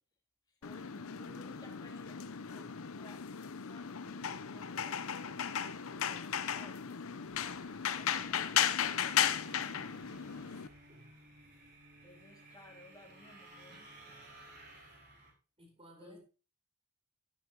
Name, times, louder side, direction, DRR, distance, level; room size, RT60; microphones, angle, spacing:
sound 1, 0.6-10.7, left 8 dB, 65° left, 0.7 m, -36 dB
voice 1, 0.6-7.2 7.8-9.6 12.0-13.9 16.0-16.2, left 1 dB, 15° left, 2.8 m, -57 dB
sound 2, 7.3-15.3, right 1 dB, 50° right, 5.1 m, -56 dB
voice 2, 14.1-14.4 15.6-16.2, equal, 25° right, 4.6 m, -58 dB
13.0 x 9.9 x 3.1 m
head